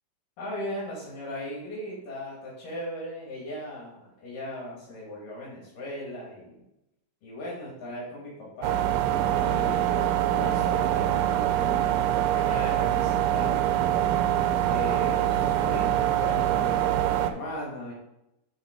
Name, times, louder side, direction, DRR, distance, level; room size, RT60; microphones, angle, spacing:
voice 1, 0.4-6.6 7.2-8.9 9.3-12.0 12.3-13.7 14.7-17.9, left 1 dB, 75° left, -5 dB, 3.3 m, -38 dB
sound 1, 8.6-17.3, right 11 dB, 90° right, 2.2 m, -24 dB
8.6 x 3.6 x 4.9 m, 0.88 s
omnidirectional pair, 3.8 m